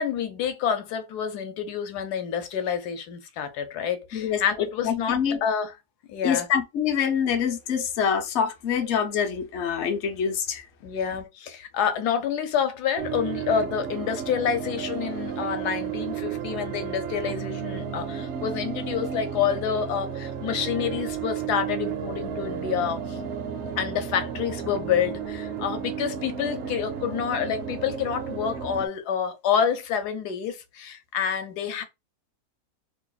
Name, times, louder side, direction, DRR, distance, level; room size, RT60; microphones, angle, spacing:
voice 1, 0.0-5.7 6.1-6.5 10.8-23.2 23.8-31.8, left 7 dB, 75° left, 1.2 m, -28 dB
voice 2, 4.1-5.4 6.2-10.6, left 7 dB, 55° left, 0.8 m, -26 dB
sound 1, 13.0-28.9, right 8 dB, 65° right, 0.7 m, -33 dB
2.9 x 2.3 x 3.9 m
omnidirectional pair, 1.8 m